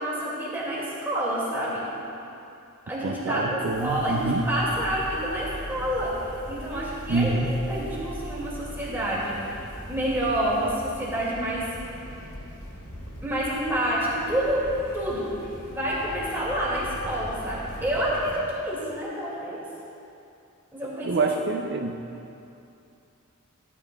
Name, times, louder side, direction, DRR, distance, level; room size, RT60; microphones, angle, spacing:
voice 1, 0.0-1.8 2.9-6.1 6.5-9.5 9.9-11.7 13.2-14.6 14.9-15.3 15.7-19.6 20.7-21.6, right 1 dB, 10° right, -8 dB, 2.4 m, -28 dB
voice 2, 3.0-4.5 7.1-7.5 21.0-22.0, right 3 dB, 55° right, 1 dB, 0.5 m, -26 dB
sound 1, 3.7-18.4, equal, 80° left, 1.9 m, -40 dB
15.5 x 11.5 x 2.4 m, 2.7 s
head